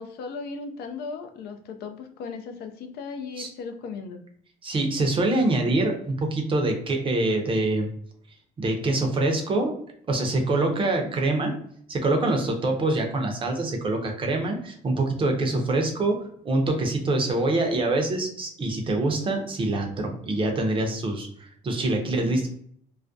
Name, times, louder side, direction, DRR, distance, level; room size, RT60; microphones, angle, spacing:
voice 1, 0.0-4.2 11.0-11.1, left 4 dB, 70° left, 6 dB, 0.4 m, -37 dB
voice 2, 4.6-7.9 8.6-9.7 10.1-11.5 11.9-22.5, right 2 dB, 30° right, 3 dB, 0.5 m, -25 dB
2.3 x 2.1 x 2.5 m, 0.63 s
cardioid pair, 110°, 17 cm